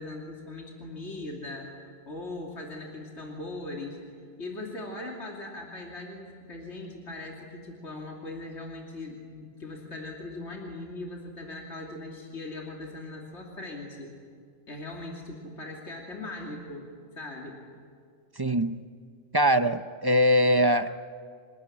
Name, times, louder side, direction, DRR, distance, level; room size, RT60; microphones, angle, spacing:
voice 1, 0.0-4.0 4.4-14.1 14.7-16.9 17.1-17.6, left 2 dB, 60° left, -1 dB, 3.1 m, -40 dB
voice 2, 18.4-18.8 19.3-21.0, equal, 25° right, 10 dB, 0.5 m, -22 dB
27.5 x 20.0 x 10.0 m, 2.1 s
omnidirectional pair, 1.3 m